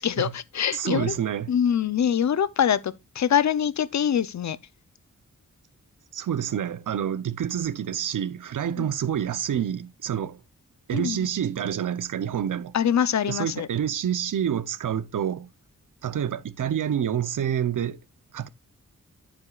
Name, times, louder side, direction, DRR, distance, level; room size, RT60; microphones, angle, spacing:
voice 1, 0.0-1.1 1.5-4.6 8.8-8.9 10.9-11.3 12.7-13.7, left 8 dB, 60° left, 0.6 m, -24 dB
voice 2, 0.7-1.5 6.1-10.4 10.9-12.7 13.3-15.5 16.0-18.0 18.3-18.5, right 9 dB, 75° right, 0.7 m, -28 dB
9.8 x 9.1 x 2.4 m
wide cardioid pair, 125°, 32 cm